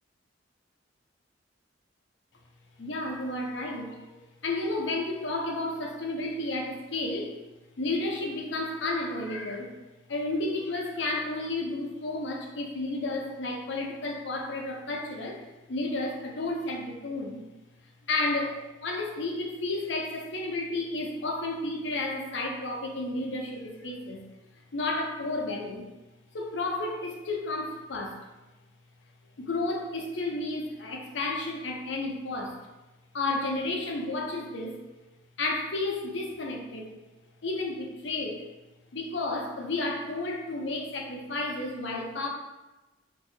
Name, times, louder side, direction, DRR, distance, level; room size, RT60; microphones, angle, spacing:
voice 1, 2.8-4.0 4.4-7.4 7.8-9.7 10.1-17.4 18.1-24.2 24.7-25.8 26.3-28.2 29.4-32.6 33.1-34.8 35.4-36.9 37.4-38.4 38.9-42.3, left 2 dB, 70° left, 1 dB, 0.6 m, -32 dB
3.0 x 2.6 x 4.3 m, 1.1 s
head